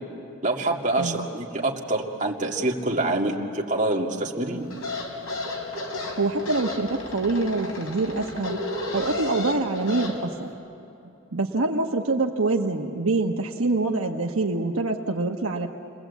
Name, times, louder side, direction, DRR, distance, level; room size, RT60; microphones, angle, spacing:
voice 1, 0.4-4.6, right 2 dB, 35° right, -1 dB, 2.2 m, -26 dB
voice 2, 0.9-1.2 6.2-8.6 8.9-10.5 11.3-15.7, right 3 dB, 75° right, 2 dB, 1.2 m, -25 dB
sound 1, 4.7-10.1, left 2 dB, 75° left, 3.5 m, -33 dB
29.5 x 21.0 x 8.3 m, 2.9 s
head